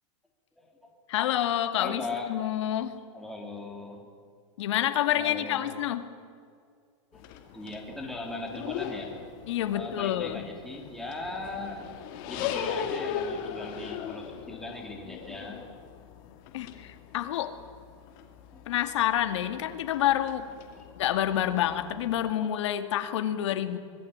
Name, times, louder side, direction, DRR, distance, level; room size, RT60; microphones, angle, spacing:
voice 1, 0.6-0.9 1.8-2.3 3.1-4.1 5.1-5.7 7.1-7.3 7.5-9.1 9.7-11.8 12.2-15.6 18.5-18.8 20.7-21.0, left 2 dB, ahead, -1 dB, 3.6 m, -39 dB
voice 2, 1.1-2.0 2.3-3.0 4.6-6.1 9.5-10.4 16.5-17.6 18.7-20.5 21.0-23.8, left 12 dB, 65° left, 9 dB, 2.2 m, -28 dB
sound 1, 7.1-22.3, left 8 dB, 45° left, 2.7 m, -39 dB
25.5 x 19.5 x 8.9 m, 2.2 s
supercardioid pair, 160°, 16 cm